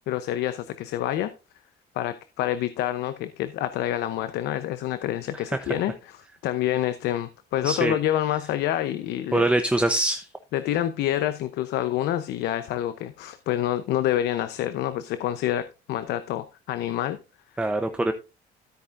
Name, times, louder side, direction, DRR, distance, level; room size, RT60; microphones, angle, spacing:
voice 1, 0.1-1.3 1.9-9.5 10.5-17.2, left 12 dB, 80° left, 0.8 m, -27 dB
voice 2, 7.6-8.0 9.3-10.3 17.6-18.1, right 1 dB, 5° right, 0.8 m, -23 dB
13.5 x 8.5 x 2.6 m
cardioid pair, 110°, 17 cm